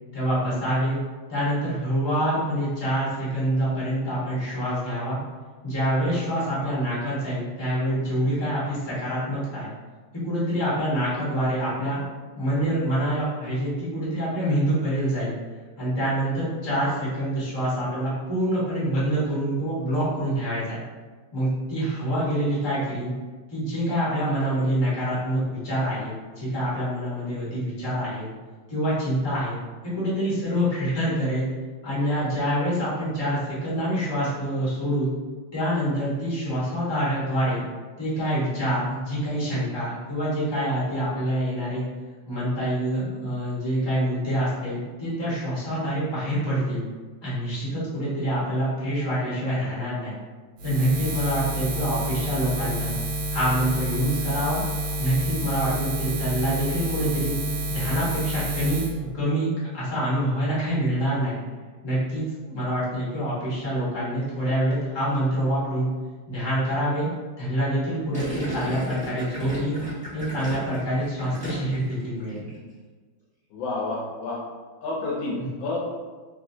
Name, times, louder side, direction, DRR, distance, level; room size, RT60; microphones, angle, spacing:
voice 1, 0.1-1.0 1.3-5.2 5.6-9.7 10.2-12.0 12.3-15.3 15.8-20.8 21.3-23.1 23.5-28.3 28.7-29.6 29.9-31.5 31.8-35.1 35.5-37.6 38.0-41.8 42.2-46.8 47.2-50.1 50.6-52.9 53.3-54.6 55.0-57.3 57.7-58.8 59.1-61.4 61.8-65.9 66.3-67.1 67.4-69.8 70.1-72.5, right 1 dB, 15° left, -9 dB, 0.9 m, -26 dB
Buzz, 50.6-58.9, right 1 dB, 80° right, 1.4 m, -29 dB
Gurgling, 68.1-71.9 72.2-72.6, equal, 5° right, 1.0 m, -34 dB
voice 2, 73.5-74.4 74.8-75.8, left 2 dB, 70° left, -4 dB, 1.3 m, -29 dB
3.2 x 3.1 x 2.7 m, 1.4 s
omnidirectional pair, 2.3 m